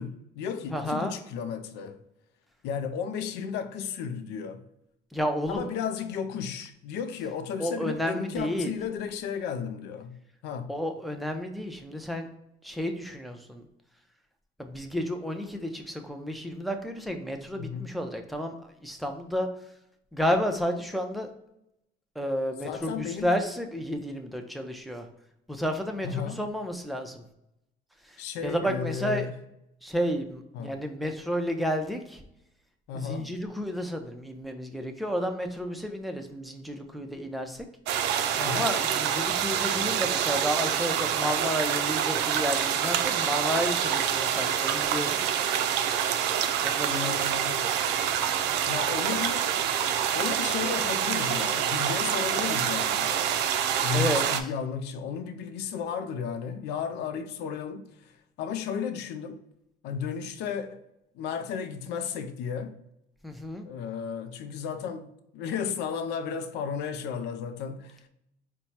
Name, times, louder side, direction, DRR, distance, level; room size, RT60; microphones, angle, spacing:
voice 1, 0.0-2.0 2.6-4.6 5.5-10.2 10.4-10.8 17.6-17.9 22.6-23.3 26.0-26.4 28.2-29.3 30.5-30.8 32.9-33.4 38.4-38.7 46.9-47.7 48.7-49.5 50.1-53.1 53.8-58.1 58.4-59.4 59.8-60.8 61.1-62.8 63.7-65.1 65.3-68.0, left 7 dB, 85° left, 0.5 m, -33 dB
voice 2, 0.7-1.1 5.1-5.7 7.6-8.7 10.7-12.3 12.6-13.6 14.6-19.5 20.1-21.3 22.2-25.1 25.5-27.2 28.4-29.3 29.8-32.2 32.9-37.6 38.4-45.2 46.6-47.2 53.9-54.2 63.2-63.7, equal, ahead, 0.5 m, -31 dB
sound 1, 37.9-54.4, right 9 dB, 85° right, 0.4 m, -26 dB
4.4 x 2.2 x 4.0 m
cardioid pair, 110°, 17 cm